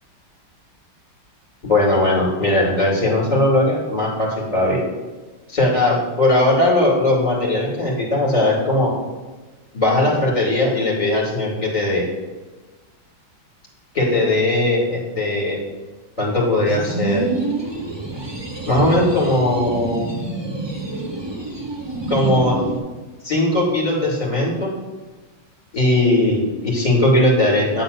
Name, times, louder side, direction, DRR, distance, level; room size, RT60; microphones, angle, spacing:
voice 1, 1.6-4.8 5.5-8.9 9.7-12.0 13.9-15.6 16.2-17.3 18.7-20.1 22.1-22.6 23.2-24.7 25.7-27.8, left 1 dB, 20° left, -4 dB, 2.6 m, -19 dB
sound 1, 16.7-22.8, right 2 dB, 25° right, 0.6 m, -27 dB
9.4 x 4.0 x 6.8 m, 1.3 s
omnidirectional pair, 2.2 m